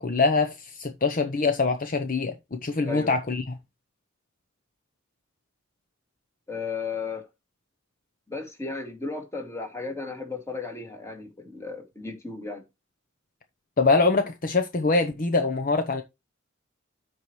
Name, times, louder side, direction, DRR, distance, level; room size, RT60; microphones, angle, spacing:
voice 1, 0.0-3.4 13.8-16.0, left 3 dB, 45° left, 0.8 m, -24 dB
voice 2, 6.5-7.2 8.3-12.6, left 4 dB, 15° left, 2.1 m, -34 dB
13.5 x 4.7 x 3.1 m
head